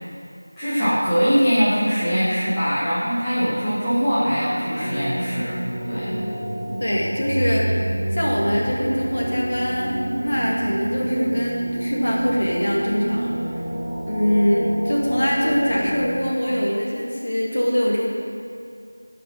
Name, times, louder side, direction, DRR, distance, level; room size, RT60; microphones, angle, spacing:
voice 1, 0.6-5.6 5.9-6.2, equal, 5° left, -17 dB, 1.2 m, -22 dB
sound 1, 4.1-16.2, right 1 dB, 15° right, 1.1 m, -28 dB
voice 2, 6.8-7.7 8.1-13.4 14.1-18.1, equal, 40° left, -4 dB, 1.9 m, -23 dB
13.0 x 5.4 x 6.4 m, 2.4 s
figure-of-eight pair, 175°, 0 cm